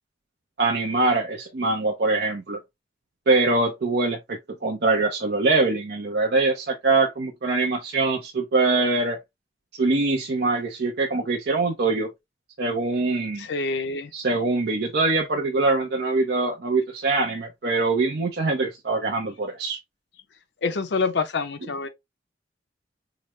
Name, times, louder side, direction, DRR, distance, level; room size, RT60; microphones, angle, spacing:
voice 1, 0.6-2.6 3.3-9.2 9.8-12.1 12.6-13.5 14.1-19.8, right 3 dB, 60° right, 0.6 m, -23 dB
voice 2, 13.4-14.1 20.6-21.9, left 4 dB, 70° left, 0.6 m, -26 dB
4.8 x 2.0 x 3.0 m
head